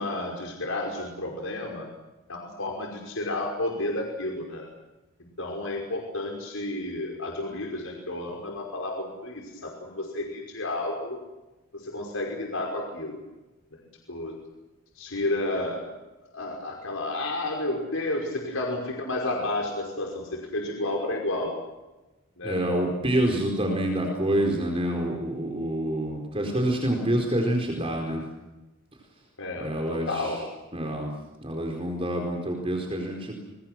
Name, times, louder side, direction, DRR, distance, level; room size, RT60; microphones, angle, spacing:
voice 1, 0.0-1.9 2.3-4.6 5.4-11.2 11.7-13.2 14.1-14.3 15.0-15.8 16.3-21.5 22.4-22.6 29.4-30.4, left 2 dB, 85° left, 0 dB, 5.4 m, -31 dB
voice 2, 22.4-28.2 29.6-30.4 30.7-31.1 31.4-33.4, right 1 dB, 30° right, 1 dB, 4.4 m, -27 dB
30.0 x 24.0 x 6.1 m, 1.1 s
head